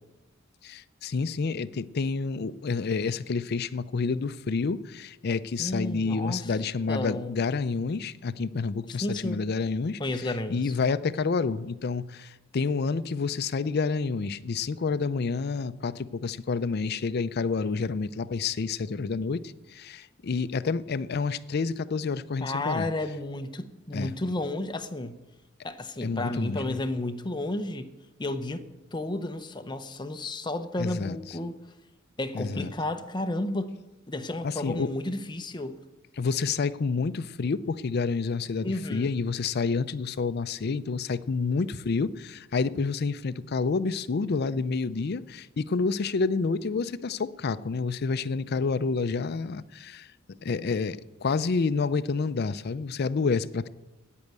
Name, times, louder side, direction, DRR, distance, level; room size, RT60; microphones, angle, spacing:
voice 1, 0.6-10.0 10.5-22.9 23.9-24.1 26.0-26.8 30.8-31.2 32.3-32.7 34.4-34.9 36.2-53.7, left 4 dB, 55° left, 0.5 m, -29 dB
voice 2, 5.6-6.5 6.9-7.3 8.9-9.4 10.0-10.7 22.4-25.2 25.6-27.9 28.2-28.6 28.9-31.6 32.2-33.8 34.1-35.7 38.6-39.1, left 2 dB, 20° left, 0.7 m, -32 dB
9.1 x 8.5 x 9.4 m
head